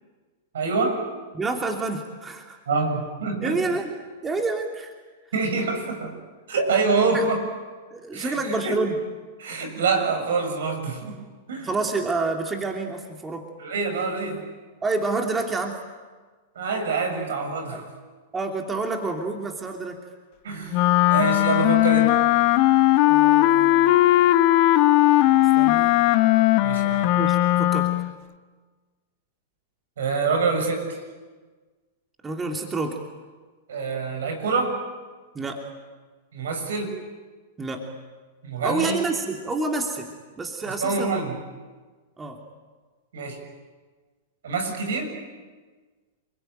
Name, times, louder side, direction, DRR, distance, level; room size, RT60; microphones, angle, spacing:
voice 1, 0.5-1.0 2.7-3.8 5.3-6.2 6.5-7.4 8.1-8.7 9.4-11.2 11.5-11.7 13.6-14.5 16.5-17.9 20.4-20.8 21.1-22.2 26.6-27.1 30.0-31.0 33.7-34.8 36.3-36.9 38.4-39.0 40.6-41.4 43.1-43.4 44.4-45.1, right 4 dB, 70° right, 5 dB, 6.9 m, -26 dB
voice 2, 1.3-2.6 3.4-3.9 4.2-4.9 7.1-7.3 7.9-8.9 11.6-13.5 14.8-15.8 17.7-17.8 18.3-20.0 23.0-24.0 25.6-26.0 27.2-27.9 32.2-33.0 35.3-35.6 37.6-37.9 38.6-41.2 42.2-42.4, right 3 dB, 15° right, 2 dB, 3.0 m, -28 dB
Wind instrument woodwind instrument, 20.7-28.1, left 15 dB, 50° left, 1.2 m, -18 dB
29.5 x 21.5 x 9.3 m, 1.4 s
hypercardioid pair, 105°, 0 cm